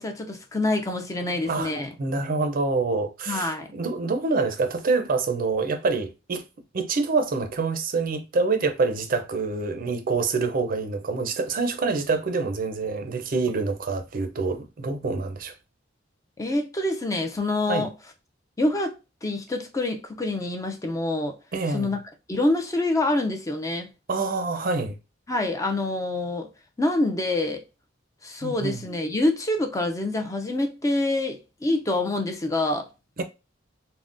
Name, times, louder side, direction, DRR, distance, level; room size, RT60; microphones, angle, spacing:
voice 1, 0.0-1.9 3.3-3.7 16.4-17.9 18.6-21.4 21.7-22.0 22.3-23.9 25.3-26.5 26.8-27.6 28.2-32.9, left 2 dB, 15° left, 0.4 m, -26 dB
voice 2, 1.5-6.4 6.7-15.5 17.7-17.9 21.5-21.9 24.1-25.0 28.4-28.8 33.2-33.3, right 3 dB, 45° right, 0.5 m, -26 dB
3.6 x 2.1 x 2.5 m
head